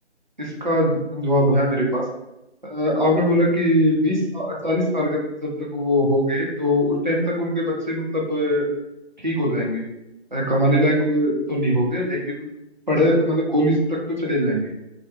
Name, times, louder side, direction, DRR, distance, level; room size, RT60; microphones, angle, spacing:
voice 1, 0.4-2.0 2.7-8.6 9.2-9.8 10.3-12.5 12.9-13.8 14.2-14.7, equal, 40° right, -3 dB, 0.7 m, -21 dB
3.0 x 2.3 x 3.3 m, 0.93 s
figure-of-eight pair, 180°, 35 cm